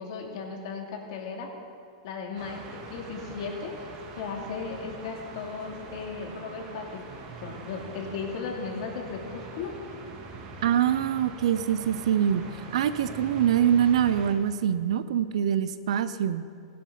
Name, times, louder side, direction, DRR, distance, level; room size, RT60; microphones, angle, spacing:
voice 1, 0.0-1.5 2.0-2.6 2.9-3.7 4.2-7.0 7.4-9.7, left 5 dB, 55° left, 1 dB, 2.7 m, -36 dB
sound 1, 2.4-14.3, right 4 dB, 35° right, 1.7 m, -43 dB
voice 2, 10.6-12.5 12.7-16.4, right 9 dB, 70° right, 13 dB, 0.7 m, -24 dB
16.0 x 11.5 x 5.1 m, 2.4 s
supercardioid pair, 150°, 3 cm